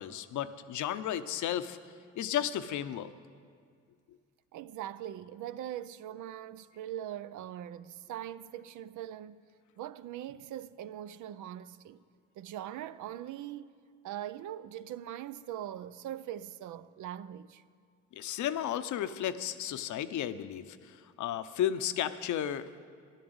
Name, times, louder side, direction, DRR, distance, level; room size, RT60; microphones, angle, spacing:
voice 1, 0.0-1.8 2.2-3.1 18.1-22.7, left 10 dB, 75° left, 0.7 m, -33 dB
voice 2, 4.5-9.5 9.8-12.0 12.4-13.7 14.0-17.6, right 11 dB, 80° right, 0.6 m, -41 dB
13.0 x 11.0 x 7.9 m
cardioid pair, 90°, 30 cm